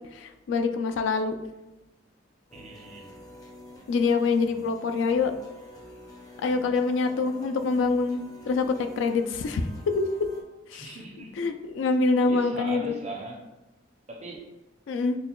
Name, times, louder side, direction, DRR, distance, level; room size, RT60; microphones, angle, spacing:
voice 1, 0.1-1.3 3.9-5.3 6.4-9.7 10.0-10.1 10.7-11.0 11.4-12.9 14.9-15.2, left 4 dB, 80° left, 7 dB, 0.3 m, -25 dB
sound 1, 2.5-10.4, equal, 20° left, 0.5 m, -49 dB
voice 2, 2.5-3.1 10.7-11.4 12.3-13.4 14.1-14.4, right 2 dB, 35° right, 0 dB, 0.6 m, -39 dB
5.9 x 2.1 x 2.2 m, 1.0 s
head